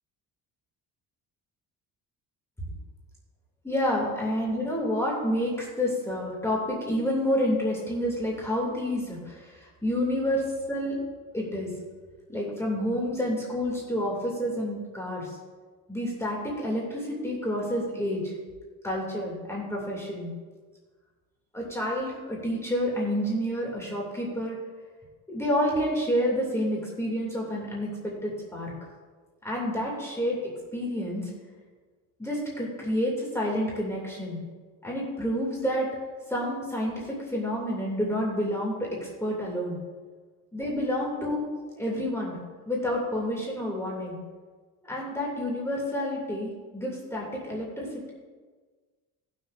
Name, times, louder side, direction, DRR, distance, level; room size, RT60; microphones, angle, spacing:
voice 1, 3.6-11.0 11.3-11.7 12.3-15.4 15.9-18.4 18.8-20.3 21.5-24.6 25.3-28.7 29.4-31.3 32.2-34.4 34.8-35.9 36.3-39.7 40.5-41.4 41.7-42.4 42.7-44.2 44.8-48.1, equal, 5° left, -4 dB, 2.5 m, -29 dB
18.5 x 6.4 x 2.6 m, 1.4 s
cardioid pair, 110°, 37 cm